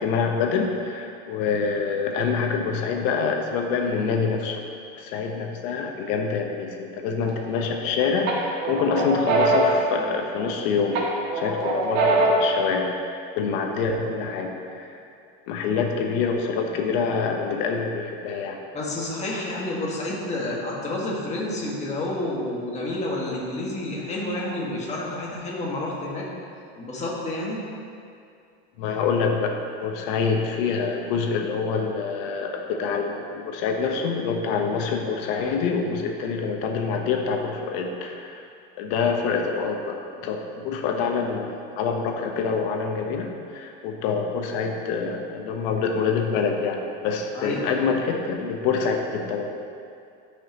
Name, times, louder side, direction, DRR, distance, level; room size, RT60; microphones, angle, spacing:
voice 1, 0.0-4.6 5.0-11.0 11.3-15.0 15.5-18.6 28.8-38.4 38.8-49.4, left 5 dB, 70° left, 2 dB, 1.1 m, -26 dB
sound 1, 7.3-7.9 8.3-10.6 10.9-12.6, right 2 dB, 60° right, 1.7 m, -23 dB
voice 2, 18.7-26.3 26.8-27.6 47.3-47.8, left 1 dB, 20° left, -4 dB, 1.8 m, -29 dB
12.5 x 5.7 x 3.0 m, 2.4 s
supercardioid pair, 130°, 30 cm